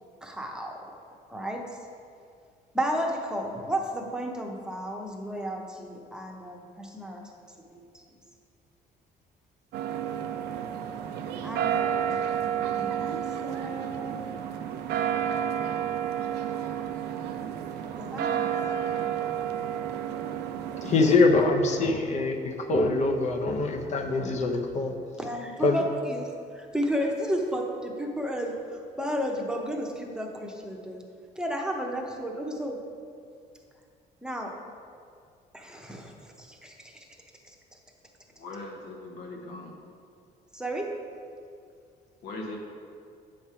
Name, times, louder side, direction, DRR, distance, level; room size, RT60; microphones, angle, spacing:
voice 1, 0.2-0.9 1.3-1.7 2.7-7.2 7.9-8.0 11.4-12.1 12.6-14.4 18.0-18.8 20.8-21.1 25.2-26.3 26.5-28.5 29.0-31.0 31.4-32.8 34.2-34.5 35.5-36.9 37.4-37.5 40.5-40.9, equal, 5° right, 0 dB, 0.9 m, -33 dB
sound 1, 9.7-21.2, right 9 dB, 75° right, 0.5 m, -31 dB
voice 2, 20.8-24.9 25.6-25.8, left 3 dB, 45° left, 4 dB, 0.7 m, -24 dB
voice 3, 38.4-39.7 42.2-42.6, left 2 dB, 75° left, 0 dB, 1.2 m, -39 dB
8.4 x 3.3 x 5.6 m, 2.3 s
cardioid pair, 110°, 17 cm